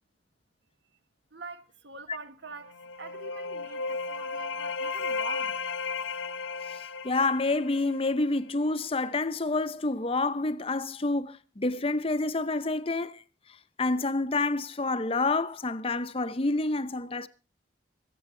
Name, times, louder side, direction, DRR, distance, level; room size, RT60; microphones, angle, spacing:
voice 1, 1.3-5.6, right 3 dB, 70° right, 1.1 m, -44 dB
sound 1, 2.6-8.3, left 4 dB, 85° left, 0.8 m, -34 dB
voice 2, 6.7-13.2 13.8-17.3, left 3 dB, 30° left, 0.7 m, -28 dB
25.5 x 8.5 x 3.7 m
head